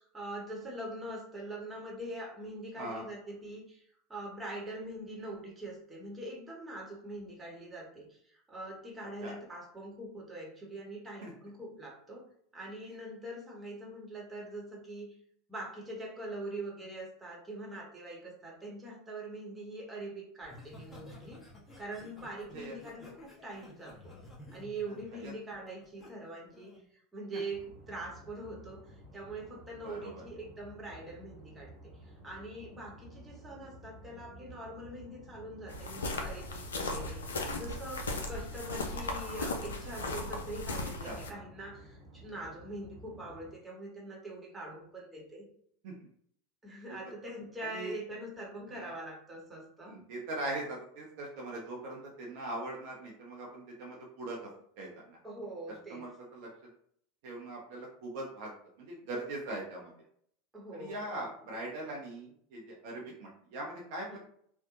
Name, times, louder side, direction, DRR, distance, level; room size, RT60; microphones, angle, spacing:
voice 1, 0.0-3.8 4.1-15.2 15.5-21.4 21.8-24.1 24.5-31.7 32.0-45.5 46.6-50.0 55.2-56.0 60.5-61.3 63.0-63.1 64.1-64.2, right 1 dB, 15° right, -3 dB, 1.0 m, -43 dB
Laughter, 20.4-26.1 26.5-26.8, left 2 dB, 10° left, 0.9 m, -52 dB
sound 1, 27.5-43.5, right 1 dB, 75° right, 1.0 m, -53 dB
voice 2, 29.8-30.2 41.0-41.4 45.8-45.9 46.9-47.0 47.7-48.0 48.7-48.9 49.9-54.5 54.8-55.2 55.9-56.5 57.2-58.5 58.8-59.9 60.7-64.2, right 2 dB, 55° right, -2 dB, 0.6 m, -41 dB
sound 2, 35.7-41.3, left 2 dB, 75° left, 0.4 m, -37 dB
2.6 x 2.1 x 2.5 m, 0.64 s
figure-of-eight pair, 80°, 0 cm